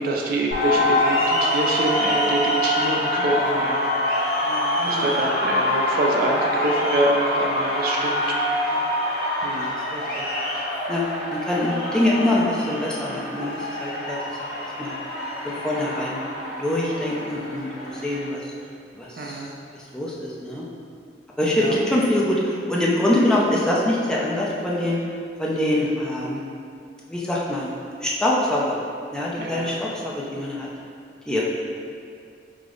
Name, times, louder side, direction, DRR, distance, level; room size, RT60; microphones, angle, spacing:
voice 1, 0.0-3.9 4.8-8.4 9.4-9.8 19.2-19.5 21.4-21.8 29.4-29.7, right 2 dB, 55° right, -1 dB, 0.4 m, -25 dB
sound 1, 0.5-18.3, left 1 dB, 55° left, 1.4 m, -25 dB
voice 2, 4.4-5.1 8.7-8.8 9.5-9.6 9.9-10.2 10.9-11.0 11.3-14.2 14.8-15.0 15.4-16.2 16.5-18.4 18.9-19.4 19.9-20.6 21.4-25.0 25.4-26.4 27.1-27.7 28.0-28.8 29.1-30.7 31.3-31.4, left 1 dB, 5° left, -5 dB, 0.4 m, -24 dB
4.9 x 2.0 x 3.7 m, 2.3 s
head